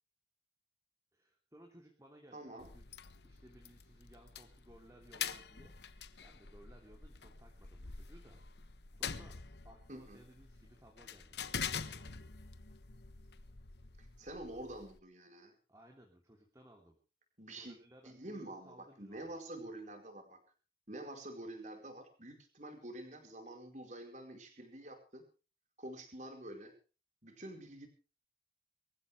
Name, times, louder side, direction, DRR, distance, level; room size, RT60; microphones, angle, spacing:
voice 1, 1.1-2.9 3.2-8.4 8.9-9.4 9.6-12.4 15.7-17.0 17.5-19.3, right 1 dB, 15° right, 1 dB, 3.1 m, -61 dB
voice 2, 2.3-2.7 9.9-10.2 14.0-15.5 17.4-17.8 18.0-20.4 20.9-25.3 25.8-26.7 27.2-27.9, right 1 dB, 40° right, 4 dB, 4.6 m, -47 dB
sound 1, 2.6-15.0, left 7 dB, 70° left, 1.2 m, -46 dB
24.0 x 15.0 x 3.4 m, 0.34 s
head